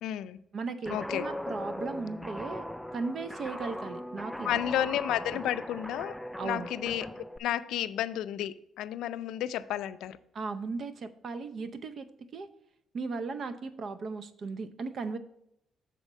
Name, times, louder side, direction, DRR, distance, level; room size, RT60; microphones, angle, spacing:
voice 1, 0.0-0.4 0.9-1.3 4.4-7.1 7.4-10.2, left 11 dB, 85° left, 14 dB, 0.3 m, -32 dB
voice 2, 0.5-4.5 6.4-6.7 10.3-12.1 12.3-12.5 12.9-15.2, right 4 dB, 55° right, 10 dB, 0.6 m, -37 dB
Guitar, 0.9-7.4, left 1 dB, 5° left, 0.3 m, -39 dB
7.2 x 4.2 x 6.4 m, 0.77 s
cardioid pair, 90°, 0 cm